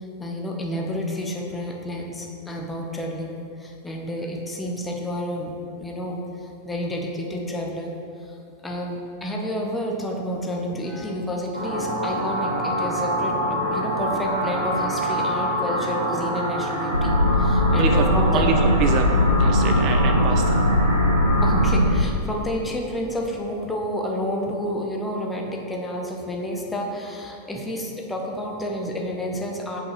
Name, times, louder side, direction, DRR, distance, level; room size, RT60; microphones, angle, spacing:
voice 1, 0.2-3.3 3.6-5.5 5.8-6.2 6.6-7.9 8.6-17.1 17.4-18.4 21.4-29.8, equal, 10° left, 0 dB, 0.9 m, -30 dB
sound 1, 11.5-21.7, right 1 dB, 80° right, 1.4 m, -26 dB
sound 2, 16.9-22.0, left 1 dB, 85° left, 0.3 m, -19 dB
voice 2, 18.3-20.6, right 6 dB, 40° right, 5 dB, 0.4 m, -26 dB
8.3 x 5.2 x 3.2 m, 2.6 s
figure-of-eight pair, 90°, 0 cm